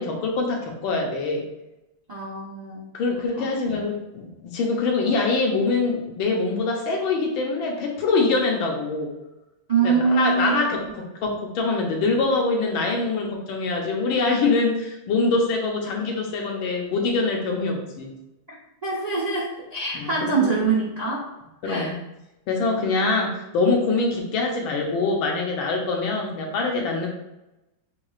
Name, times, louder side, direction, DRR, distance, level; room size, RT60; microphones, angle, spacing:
voice 1, 0.0-1.5 2.9-9.1 9.8-18.1 19.9-20.5 21.6-21.9 22.5-27.1, left 3 dB, 80° left, 0 dB, 1.6 m, -24 dB
voice 2, 2.1-2.8 3.4-3.5 9.7-10.6 18.8-21.2 21.6-21.9, right 5 dB, 65° right, -6 dB, 0.4 m, -24 dB
6.9 x 3.1 x 2.4 m, 0.94 s
omnidirectional pair, 2.2 m